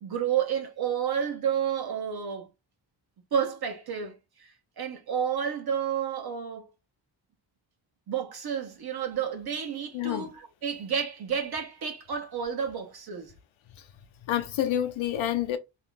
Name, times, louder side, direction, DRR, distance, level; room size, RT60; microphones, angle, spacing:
voice 1, 0.0-2.5 3.3-4.1 4.4-4.5 4.8-6.7 8.1-13.3, right 8 dB, 55° right, 1.1 m, -30 dB
voice 2, 9.9-10.3 14.3-15.6, left 11 dB, 85° left, 0.8 m, -28 dB
3.0 x 2.4 x 3.7 m
wide cardioid pair, 150°, 46 cm